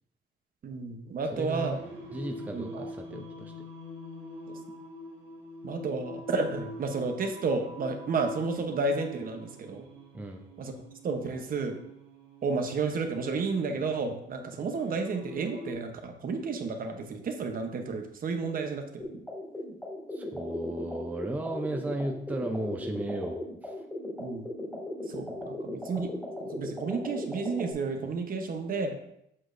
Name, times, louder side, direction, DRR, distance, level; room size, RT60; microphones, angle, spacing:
voice 1, 0.6-1.8 2.5-2.9 5.6-9.9 10.6-10.7 11.0-11.8 12.4-19.1 24.2-24.5 25.1-26.1 26.4-29.0, right 4 dB, 50° right, 5 dB, 0.9 m, -31 dB
voice 2, 1.3-1.8 2.1-3.5 10.1-10.4 20.1-23.7, right 1 dB, 10° right, 3 dB, 0.6 m, -35 dB
Singing, 1.7-15.7, left 1 dB, 80° right, 1.9 m, -45 dB
sound 1, 19.0-27.7, left 1 dB, 5° left, 1.9 m, -38 dB
7.6 x 6.1 x 2.6 m, 0.76 s
cardioid pair, 140°, 19 cm